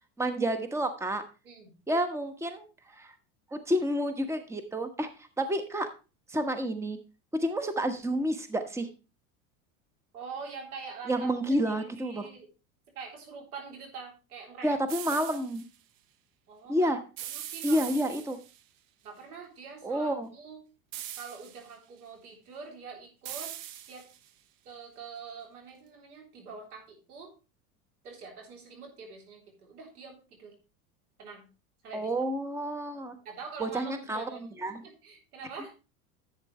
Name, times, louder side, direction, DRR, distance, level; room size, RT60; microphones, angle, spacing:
voice 1, 0.2-1.2 1.9-3.1 3.5-5.9 6.3-7.0 7.3-8.9 11.1-12.3 14.6-15.6 16.7-17.0 17.6-18.4 19.8-20.3 31.9-33.2 33.6-34.8, right 1 dB, 5° right, 8 dB, 1.1 m, -30 dB
voice 2, 10.1-12.5 13.0-14.8 16.5-16.9 17.3-17.8 19.0-20.6 21.1-23.5 23.9-24.0 24.7-27.3 28.0-30.5 31.2-31.4 31.8-32.1 33.2-34.6 34.8-35.7, right 5 dB, 85° right, 1 dB, 3.8 m, -45 dB
sound 1, 14.9-15.6 17.2-18.6 20.9-21.7 23.2-24.3, right 12 dB, 50° right, 1.0 m, -41 dB
11.0 x 8.4 x 3.2 m, 0.31 s
hypercardioid pair, 95°, 43 cm